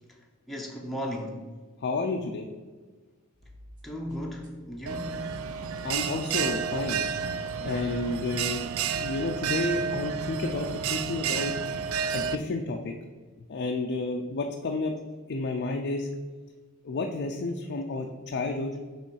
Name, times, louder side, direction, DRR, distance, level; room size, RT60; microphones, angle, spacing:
voice 1, 0.1-1.5 3.8-5.3 8.1-8.3, equal, ahead, -1 dB, 0.6 m, -36 dB
voice 2, 1.8-2.5 5.8-7.0 7.6-11.6 12.1-12.9 13.5-15.0 15.3-16.1 16.8-18.7, left 3 dB, 50° left, 3 dB, 0.4 m, -31 dB
sound 1, 3.3-10.6, right 1 dB, 40° right, 1.2 m, -51 dB
Bell, 4.9-12.4, right 7 dB, 70° right, 0.4 m, -31 dB
7.1 x 3.2 x 4.6 m, 1.4 s
head